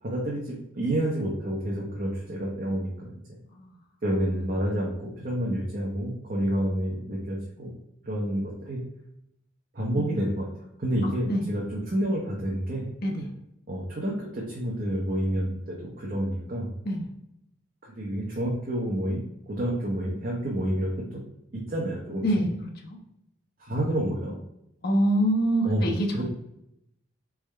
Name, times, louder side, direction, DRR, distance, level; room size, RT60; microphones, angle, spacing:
voice 1, 0.0-3.1 4.0-7.7 8.0-8.8 9.7-10.5 10.8-12.9 13.7-16.7 18.0-19.2 19.5-21.2 21.7-22.2 23.6-24.4 25.6-25.8 26.1-26.2, right 1 dB, 40° right, -3 dB, 0.8 m, -29 dB
voice 2, 11.0-11.4 13.0-13.3 16.8-17.1 22.2-22.5 22.8-23.0 24.8-26.2, right 1 dB, 45° left, 0 dB, 0.7 m, -25 dB
4.1 x 3.5 x 3.3 m, 0.81 s
head